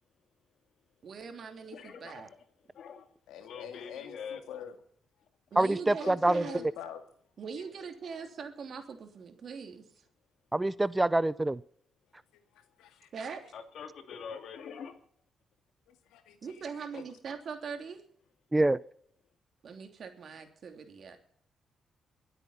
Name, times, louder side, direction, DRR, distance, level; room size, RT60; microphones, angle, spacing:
voice 1, 1.0-2.3 5.5-6.7 7.4-10.0 13.1-13.4 16.4-18.0 19.6-21.2, right 5 dB, 60° right, 3.0 m, -41 dB
voice 2, 1.7-2.2 2.7-3.1 3.4-4.6 13.5-15.0, left 6 dB, 70° left, 2.3 m, -44 dB
voice 3, 3.3-4.8 6.0-7.0 12.5-13.1 15.9-16.4 16.9-17.0, left 9 dB, 90° left, 2.0 m, -45 dB
voice 4, 5.6-6.4 10.5-11.6 18.5-18.8, right 2 dB, 15° right, 0.5 m, -25 dB
22.5 x 8.2 x 5.6 m
cardioid pair, 70°, 0 cm